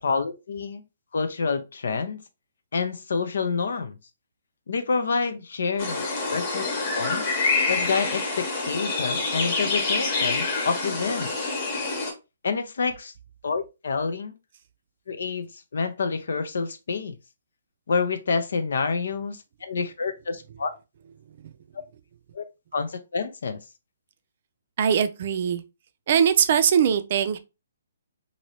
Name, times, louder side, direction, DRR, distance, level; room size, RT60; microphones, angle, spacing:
voice 1, 0.0-0.8 1.1-2.2 2.7-4.0 4.7-6.7 6.9-7.3 7.7-11.3 12.4-13.1 13.4-14.3 15.1-17.1 17.9-20.7 22.3-22.4 22.7-23.6, left 5 dB, 70° left, 0.5 m, -28 dB
sound 1, 5.8-12.1, left 3 dB, 40° left, 1.0 m, -27 dB
voice 2, 24.8-25.6 26.1-27.4, right 8 dB, 50° right, 0.4 m, -21 dB
3.0 x 2.6 x 2.8 m
hypercardioid pair, 145°, 0 cm